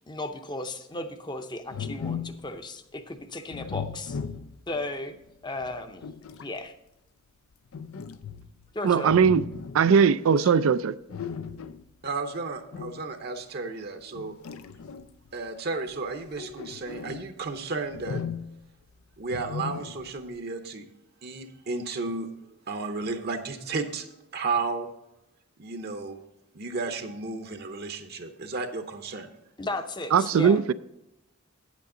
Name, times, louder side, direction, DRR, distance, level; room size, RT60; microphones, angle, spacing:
voice 1, 0.1-4.2 4.7-5.2 5.4-6.1 6.4-6.7 8.7-9.2 10.4-10.5 29.6-30.6, left 2 dB, 20° left, 0.6 m, -35 dB
sound 1, 1.7-2.5 3.5-4.8 5.6-6.5 7.7-8.7 9.1-9.9 11.1-11.9 12.7-13.0 14.1-15.3 16.1-17.3 17.9-18.7 19.3-20.2, left 6 dB, 85° left, 0.5 m, -37 dB
voice 2, 8.8-9.5 9.7-10.9 30.1-30.7, right 6 dB, 80° right, 0.4 m, -20 dB
voice 3, 12.0-14.3 15.3-18.2 19.2-20.9 21.2-22.3 22.7-24.1 24.3-24.9 25.6-26.2 26.5-29.3, right 3 dB, 50° right, 0.8 m, -33 dB
9.2 x 8.3 x 3.8 m
head